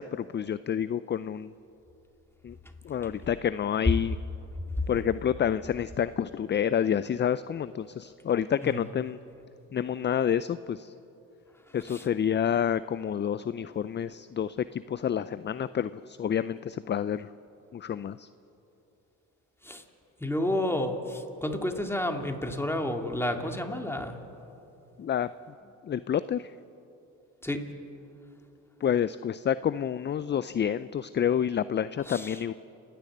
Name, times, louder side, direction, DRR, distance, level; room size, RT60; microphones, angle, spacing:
voice 1, 0.0-1.5 2.4-2.6 2.8-4.2 4.9-9.2 9.7-10.9 11.7-17.3 17.7-18.3 25.0-25.3 25.8-26.5 28.8-32.5, left 9 dB, 30° left, 15 dB, 0.5 m, -28 dB
voice 2, 20.2-24.2 27.4-27.6 32.1-32.3, left 1 dB, 5° left, 3 dB, 2.5 m, -30 dB
30.0 x 10.5 x 8.5 m, 2.9 s
supercardioid pair, 70°, 34 cm